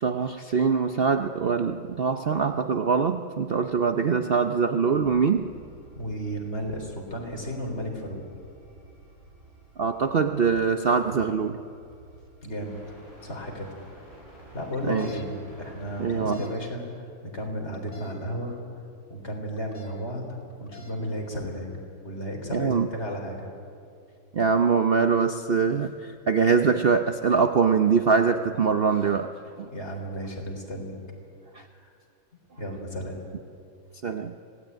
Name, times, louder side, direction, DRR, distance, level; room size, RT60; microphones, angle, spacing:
voice 1, 0.0-5.5 9.8-11.6 14.8-15.2 16.0-16.5 22.5-22.9 24.3-29.7 31.5-31.7 34.0-34.3, right 5 dB, 65° right, 7 dB, 0.5 m, -23 dB
sound 1, 4.9-16.3, right 2 dB, 30° right, 7.9 m, -51 dB
voice 2, 6.0-8.2 12.4-12.8 13.2-13.7 14.5-16.8 17.2-18.6 19.1-21.7 22.0-23.5 29.7-31.0 31.7-31.9 32.6-33.2, equal, 35° left, 2 dB, 4.1 m, -33 dB
sound 2, 14.7-15.2 16.1-16.5 17.7-18.1 19.6-19.9 20.5-20.9, left 7 dB, 60° left, 3.8 m, -47 dB
25.0 x 17.5 x 9.3 m, 2.4 s
omnidirectional pair, 2.1 m